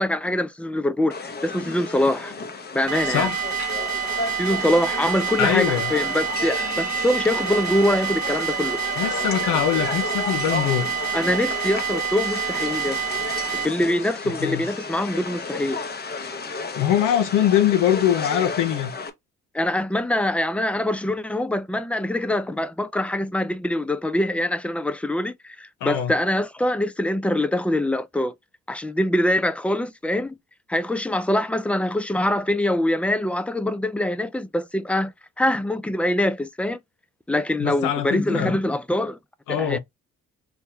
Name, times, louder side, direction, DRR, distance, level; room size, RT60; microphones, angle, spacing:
voice 1, 0.0-2.3 2.7-3.3 4.4-8.8 11.1-13.0 13.5-15.8 19.5-28.3 28.7-30.4 30.7-35.1 35.4-36.8 37.3-39.2 39.5-39.8, left 1 dB, 5° left, 0.4 m, -24 dB
sound 1, 1.1-19.1, left 4 dB, 35° left, 0.8 m, -33 dB
sound 2, 2.9-13.7, right 7 dB, 65° right, 0.9 m, -27 dB
voice 2, 3.0-3.4 5.4-5.9 9.0-10.9 14.3-14.6 16.8-18.9 25.8-26.1 37.6-38.6 39.5-39.8, left 10 dB, 85° left, 0.6 m, -22 dB
3.5 x 2.2 x 4.2 m
cardioid pair, 90°, 30 cm